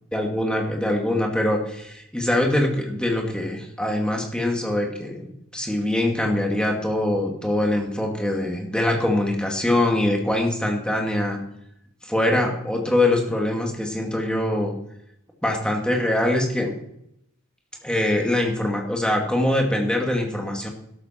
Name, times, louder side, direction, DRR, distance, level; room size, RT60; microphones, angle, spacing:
voice 1, 0.1-11.4 12.0-14.7 15.4-16.7 17.8-20.7, left 1 dB, 5° left, 1 dB, 2.2 m, -23 dB
13.0 x 12.5 x 4.4 m, 0.76 s
head